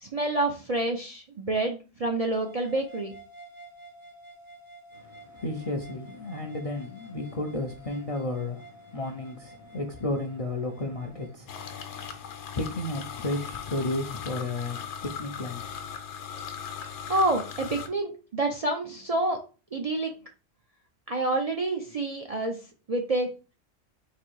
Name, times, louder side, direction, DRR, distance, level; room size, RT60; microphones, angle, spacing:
voice 1, 0.0-3.1 16.8-19.4 19.7-20.1 21.1-22.6 22.9-23.3, right 2 dB, 45° right, 0.5 m, -28 dB
sound 1, 2.3-11.4, right 1 dB, 70° right, 1.2 m, -50 dB
voice 2, 4.9-15.8, left 2 dB, 45° left, 0.4 m, -33 dB
sound 2, 11.5-17.9, left 7 dB, 70° left, 1.0 m, -39 dB
4.0 x 2.7 x 4.5 m
omnidirectional pair, 1.3 m